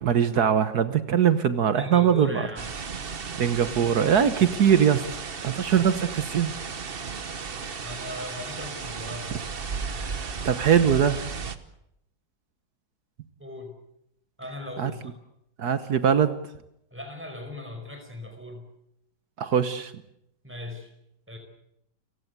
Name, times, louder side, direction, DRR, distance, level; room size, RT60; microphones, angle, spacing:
voice 1, 0.0-2.4 3.4-6.5 7.7-7.9 9.9-10.2 10.4-11.2 14.8-14.9 15.6-16.4 19.4-19.9, right 8 dB, 65° right, 13 dB, 1.5 m, -22 dB
voice 2, 1.8-2.7 7.8-9.5 13.4-13.7 14.4-15.2 16.9-18.7 20.4-20.9 21.3-21.4, left 1 dB, 5° right, 5 dB, 5.0 m, -38 dB
sound 1, 2.6-11.6, right 5 dB, 35° right, 1.1 m, -35 dB
29.5 x 16.5 x 8.2 m, 0.79 s
omnidirectional pair, 1.9 m